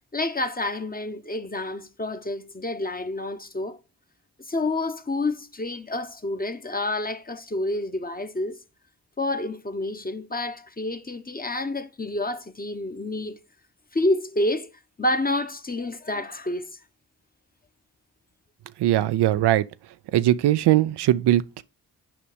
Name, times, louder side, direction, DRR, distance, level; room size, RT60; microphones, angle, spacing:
voice 1, 0.1-3.8 4.5-8.6 9.2-13.4 13.9-14.7 15.0-16.8, left 2 dB, 20° left, 0.9 m, -28 dB
voice 2, 18.8-19.6 20.1-21.6, right 13 dB, 90° right, 0.5 m, -20 dB
7.1 x 5.2 x 5.0 m
cardioid pair, 50°, 39 cm